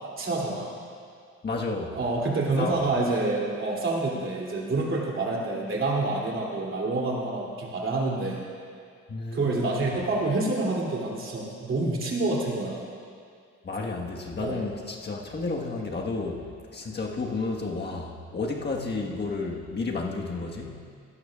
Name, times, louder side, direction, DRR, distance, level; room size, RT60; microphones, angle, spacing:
voice 1, 0.2-0.8 1.9-8.4 9.3-12.8 14.4-14.6, right 2 dB, 45° right, -3 dB, 2.9 m, -27 dB
voice 2, 1.4-2.0 2.6-2.8 9.1-9.9 13.6-16.5 16.7-20.8, left 3 dB, 35° left, 0 dB, 1.5 m, -32 dB
17.0 x 12.0 x 2.4 m, 2.3 s
cardioid pair, 90°, 30 cm